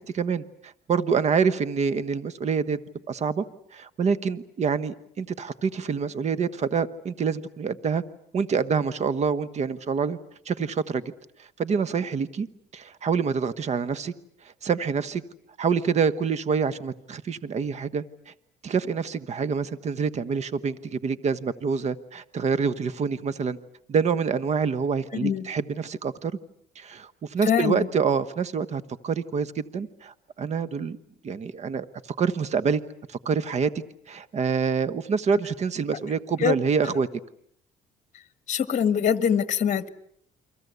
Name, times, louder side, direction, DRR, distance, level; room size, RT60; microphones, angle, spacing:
voice 1, 0.1-2.8 3.1-3.4 3.7-8.0 8.3-10.2 10.4-11.1 11.4-12.5 12.7-14.1 14.6-15.2 15.6-18.3 18.6-23.6 23.9-26.3 26.7-31.0 31.2-31.9 32.2-32.8 33.1-33.7 34.1-37.1, right 6 dB, 40° right, 15 dB, 1.2 m, -26 dB
voice 2, 25.1-25.5 27.4-27.9 36.4-36.6 38.5-39.9, left 8 dB, 45° left, 13 dB, 1.8 m, -23 dB
29.5 x 24.5 x 8.2 m, 0.69 s
cardioid pair, 110°, 17 cm